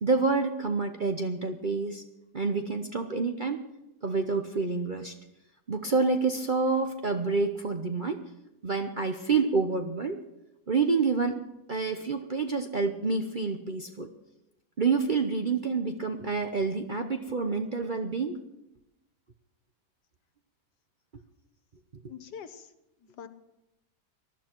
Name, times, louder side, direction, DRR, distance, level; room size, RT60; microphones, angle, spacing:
voice 1, 0.0-2.0 2.3-3.6 4.0-5.1 5.7-8.2 8.6-10.2 10.7-11.4 11.7-14.1 14.8-18.4, right 4 dB, 40° right, 6 dB, 0.7 m, -28 dB
voice 2, 22.1-22.7 23.0-23.3, left 8 dB, 75° left, 11 dB, 1.6 m, -44 dB
19.5 x 12.0 x 4.5 m, 0.92 s
omnidirectional pair, 1.8 m